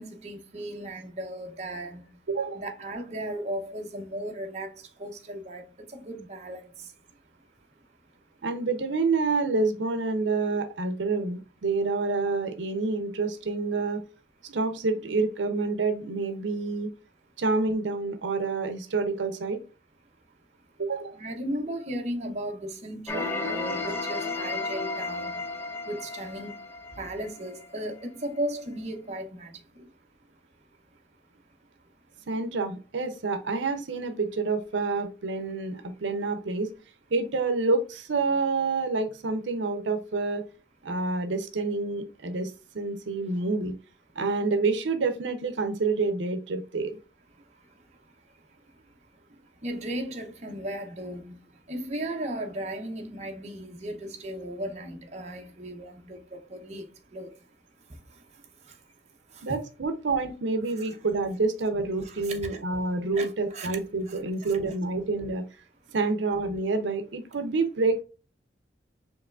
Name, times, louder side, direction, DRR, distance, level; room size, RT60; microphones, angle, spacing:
voice 1, 0.0-2.2 2.5-6.9 21.1-25.5 25.9-29.9 47.4-57.5 57.8-58.9 59.3-59.5 62.0-62.6 63.2-63.8 64.1-64.6, right 1 dB, 35° right, 0.7 m, -37 dB
voice 2, 2.3-2.6 8.4-14.0 14.4-16.9 17.4-19.6 20.8-21.2 32.3-36.7 37.1-40.5 40.8-43.7 44.2-47.0 59.4-65.4 65.9-68.0, right 3 dB, 85° right, 0.6 m, -28 dB
sound 1, 23.1-27.9, left 3 dB, 15° left, 0.5 m, -33 dB
4.7 x 3.0 x 2.3 m
head